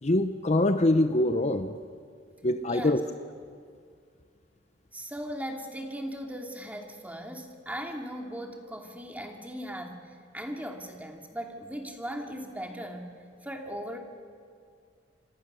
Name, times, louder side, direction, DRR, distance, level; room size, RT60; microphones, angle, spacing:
voice 1, 0.0-1.8 2.4-3.0, left 1 dB, 40° left, 9 dB, 0.8 m, -24 dB
voice 2, 2.7-3.0 4.9-13.1 13.4-14.0, equal, 10° right, 3 dB, 2.8 m, -38 dB
26.5 x 26.0 x 6.9 m, 2.2 s
head